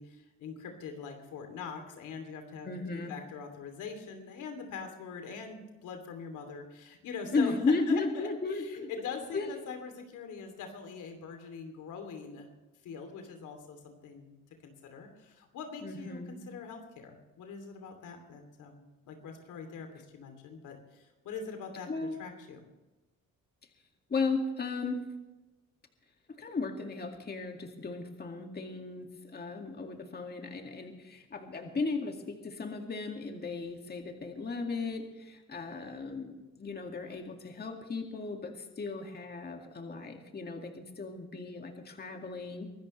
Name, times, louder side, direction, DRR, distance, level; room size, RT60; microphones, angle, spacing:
voice 1, 0.0-7.5 7.9-12.5 12.8-14.3 14.6-22.6, left 5 dB, 85° left, 5 dB, 3.0 m, -43 dB
voice 2, 2.6-3.1 7.3-8.9 9.3-9.5 15.8-16.5 21.9-22.3 24.1-25.0 26.4-42.7, left 3 dB, 35° left, 3 dB, 2.2 m, -35 dB
24.0 x 13.5 x 3.3 m, 1.1 s
cardioid pair, 90°, 30 cm